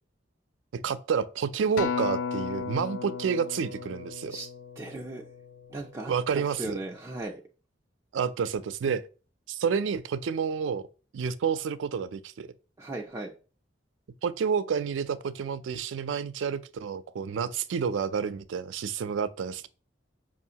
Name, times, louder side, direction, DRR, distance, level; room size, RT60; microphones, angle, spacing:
voice 1, 0.7-4.4 6.1-6.8 8.1-9.0 9.5-10.8 11.1-12.5 14.2-19.7, right 6 dB, 90° right, 0.4 m, -29 dB
Acoustic guitar, 1.8-6.2 6.8-7.0, left 6 dB, 85° left, 0.3 m, -35 dB
voice 2, 4.8-5.3 5.7-7.4 12.8-13.4, right 2 dB, 15° right, 0.3 m, -37 dB
5.4 x 2.5 x 2.8 m
head